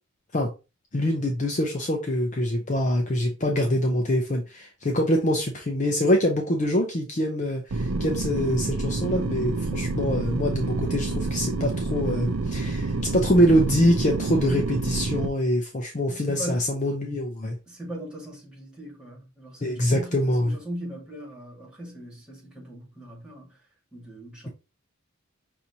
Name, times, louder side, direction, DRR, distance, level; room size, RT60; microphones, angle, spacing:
voice 1, 0.9-17.6 19.6-20.6, equal, 35° left, 0.6 m, -24 dB
sound 1, 7.7-15.3, right 3 dB, 85° right, 0.5 m, -28 dB
voice 2, 16.1-16.6 17.7-23.6 23.9-24.5, equal, 5° right, 1.9 m, -39 dB
5.8 x 2.6 x 2.8 m
head